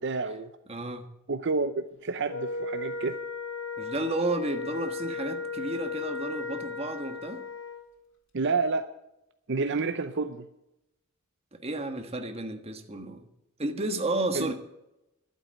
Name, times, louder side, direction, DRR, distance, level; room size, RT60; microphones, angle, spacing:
voice 1, 0.0-0.5 1.3-3.2 8.3-8.9 9.5-10.4 14.3-14.5, right 4 dB, 60° right, 9 dB, 0.7 m, -29 dB
voice 2, 0.7-1.1 3.8-7.4 11.5-13.3 13.6-14.5, right 2 dB, 30° right, 6 dB, 1.4 m, -32 dB
Wind instrument woodwind instrument, 2.2-7.9, left 4 dB, 65° left, 2.0 m, -35 dB
12.0 x 8.3 x 8.9 m, 0.88 s
head